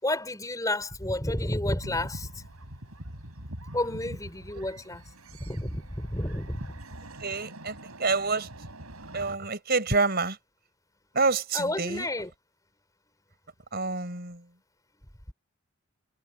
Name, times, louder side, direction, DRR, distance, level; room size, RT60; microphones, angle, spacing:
voice 1, 0.0-2.4 3.7-5.0 5.4-6.7 11.5-12.3, left 1 dB, 15° left, 4.9 m, -31 dB
sound 1, 1.8-9.3, right 1 dB, 90° right, 7.5 m, -44 dB
voice 2, 7.2-8.5 9.1-10.4 11.1-12.1 13.7-14.5, right 3 dB, 50° right, 4.9 m, -27 dB
head